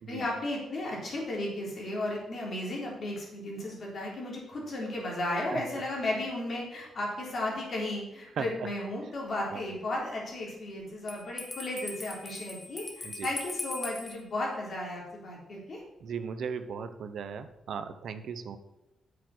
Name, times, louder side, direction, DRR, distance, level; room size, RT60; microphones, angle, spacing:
voice 1, 0.1-15.8, left 1 dB, 50° left, -2 dB, 3.7 m, -34 dB
Bell, 11.1-14.2, left 3 dB, 30° left, 1.5 m, -40 dB
voice 2, 16.0-18.6, right 6 dB, 70° right, 10 dB, 0.8 m, -37 dB
8.3 x 6.7 x 6.1 m, 0.89 s
cardioid pair, 105°, 0 cm